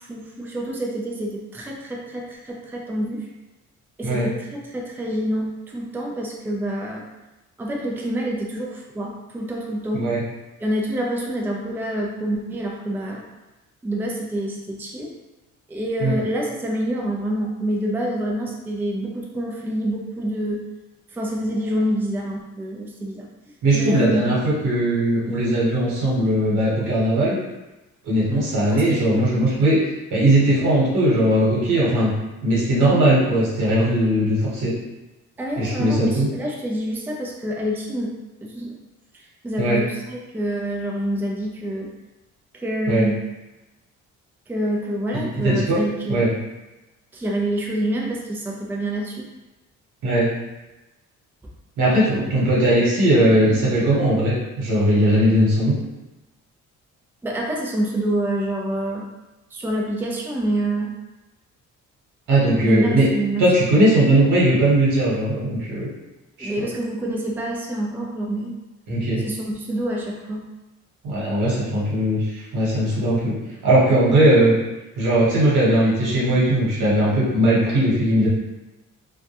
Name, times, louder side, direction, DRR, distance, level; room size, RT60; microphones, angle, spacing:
voice 1, 0.0-3.3 4.0-7.0 7.6-10.1 10.6-13.2 13.8-15.2 15.7-20.6 21.1-23.3 23.7-24.3 28.7-29.3 35.4-38.1 38.4-38.8 39.4-41.9 42.5-43.3 44.5-46.3 47.1-49.3 57.2-59.0 59.5-61.0 62.6-63.5 66.4-68.6 69.2-70.4, right 1 dB, 5° right, -2 dB, 0.4 m, -27 dB
voice 2, 23.6-27.3 28.0-29.8 30.1-32.1 32.4-34.7 35.6-36.3 39.6-39.8 42.9-43.1 45.1-45.8 46.1-46.3 50.0-50.3 51.8-55.7 62.3-63.1 63.4-65.9 66.4-66.7 68.9-69.2 71.0-73.4 73.6-74.6 75.0-78.3, right 1 dB, 85° right, -7 dB, 1.1 m, -19 dB
2.2 x 2.1 x 2.8 m, 1.0 s
cardioid pair, 90°, 30 cm